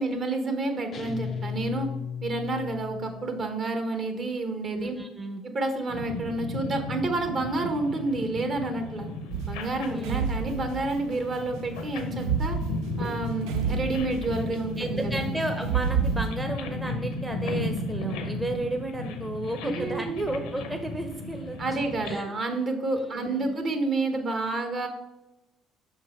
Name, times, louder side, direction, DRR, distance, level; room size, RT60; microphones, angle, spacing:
voice 1, 0.0-1.9 2.2-5.0 5.4-9.1 9.5-12.6 13.0-15.3 19.7-20.2 21.6-24.9, right 2 dB, 50° right, 4 dB, 1.2 m, -29 dB
sound 1, 0.9-3.5, left 7 dB, 50° left, 0.4 m, -35 dB
voice 2, 4.7-5.4 9.9-10.2 14.8-21.6 22.1-22.3 23.1-23.5, right 2 dB, 15° right, 4 dB, 0.7 m, -33 dB
sound 2, 5.9-22.1, left 2 dB, 80° left, 0.7 m, -35 dB
sound 3, 9.3-11.3 12.1-14.6 15.6-16.3, right 7 dB, 75° right, 0.4 m, -29 dB
5.9 x 4.6 x 4.3 m, 0.93 s
hypercardioid pair, 55°, 0 cm